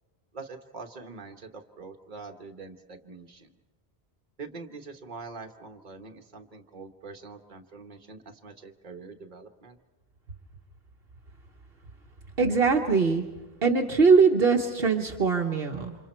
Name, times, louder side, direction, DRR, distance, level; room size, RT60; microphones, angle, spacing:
voice 1, 0.3-3.5 4.4-9.8, right 4 dB, 50° right, 4 dB, 1.5 m, -44 dB
voice 2, 12.4-13.3 13.6-16.0, right 5 dB, 65° right, 3 dB, 1.3 m, -22 dB
28.5 x 26.5 x 4.4 m, 1.2 s
omnidirectional pair, 1.1 m